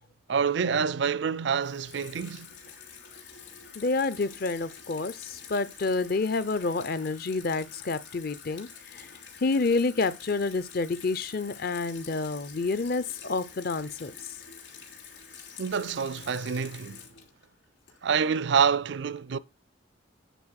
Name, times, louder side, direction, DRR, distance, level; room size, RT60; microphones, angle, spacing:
voice 1, 0.3-2.5 15.6-17.0 18.0-19.4, right 6 dB, 60° right, 0.4 m, -27 dB
Water tap faucet / Sink (filling or washing), 1.6-18.3, left 7 dB, 65° left, 3.0 m, -47 dB
voice 2, 3.7-9.1 9.4-14.1, left 3 dB, 50° left, 0.6 m, -29 dB
9.2 x 4.2 x 6.4 m
head